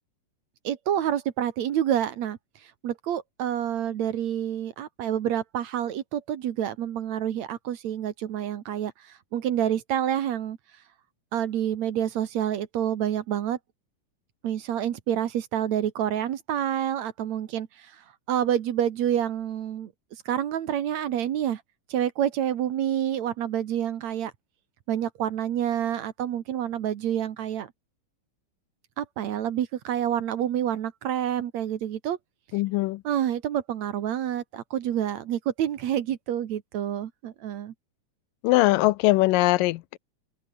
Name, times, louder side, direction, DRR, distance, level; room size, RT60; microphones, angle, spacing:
voice 1, 0.6-2.4 2.8-10.6 11.3-13.6 14.4-17.9 18.3-19.9 20.3-21.6 21.9-24.3 24.9-27.7 29.0-32.2 33.0-37.7, right 10 dB, 60° right, 2.3 m, -28 dB
voice 2, 32.5-33.0 38.4-40.0, left 19 dB, 85° left, 2.3 m, -21 dB
open air
omnidirectional pair, 3.9 m